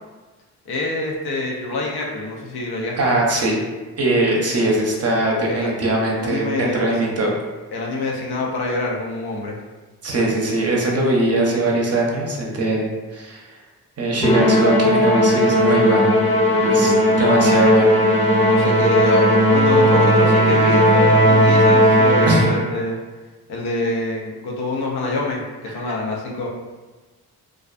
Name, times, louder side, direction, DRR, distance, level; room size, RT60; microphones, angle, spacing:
voice 1, 0.7-3.2 4.2-4.3 5.4-5.7 6.2-6.8 7.7-9.6 16.7-17.2 17.5-17.7 18.4-23.0 23.5-26.5, left 2 dB, 65° left, -1 dB, 0.6 m, -26 dB
voice 2, 3.0-3.6 4.0-7.3 10.0-13.6 14.0-16.2 16.6-16.9 17.2-18.0 22.3-22.5, right 2 dB, 40° right, -2 dB, 0.7 m, -21 dB
Musical instrument, 14.2-22.7, equal, 15° left, 0.7 m, -16 dB
2.4 x 2.2 x 2.4 m, 1.3 s
supercardioid pair, 45°, 41 cm